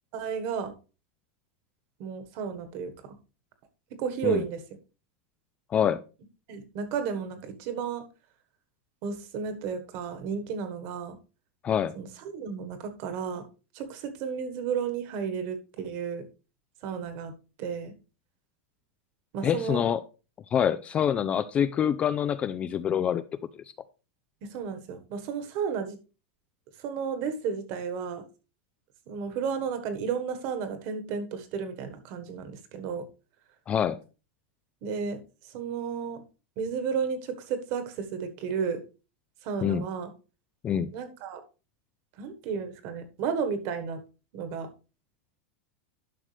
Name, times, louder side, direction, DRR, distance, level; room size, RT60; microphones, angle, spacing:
voice 1, 0.1-0.7 2.0-3.2 4.0-4.6 6.5-8.0 9.0-11.2 11.9-13.5 13.7-16.3 16.8-17.3 17.6-17.9 19.3-19.8 24.4-26.0 26.8-28.3 29.1-33.1 34.8-35.2 35.5-36.2 36.6-38.8 39.4-40.1 40.9-41.4 42.2-44.0 44.3-44.7, right 6 dB, 40° right, 1.4 m, -33 dB
voice 2, 5.7-6.0 11.6-11.9 19.4-20.0 20.5-23.2 33.7-34.0 39.6-39.8 40.6-40.9, left 9 dB, 20° left, 0.3 m, -26 dB
11.0 x 6.3 x 3.3 m
supercardioid pair, 160°, 7 cm